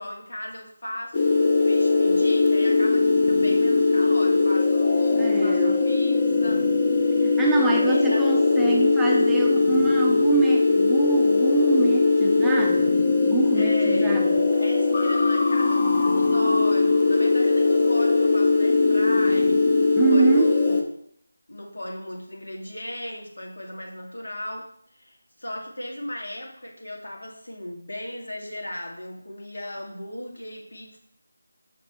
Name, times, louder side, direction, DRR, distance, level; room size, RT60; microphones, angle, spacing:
voice 1, 0.0-6.7 7.2-8.2 13.5-14.2 14.5-19.6 20.0-21.0 21.5-31.0, left 1 dB, 80° left, 0 dB, 2.2 m, -36 dB
sound 1, 1.1-20.8, left 3 dB, 30° left, 0.8 m, -20 dB
voice 2, 5.2-5.8 7.2-14.4 19.9-20.6, right 5 dB, 5° right, -3 dB, 0.6 m, -26 dB
6.0 x 5.2 x 4.4 m, 0.67 s
figure-of-eight pair, 170°, 0 cm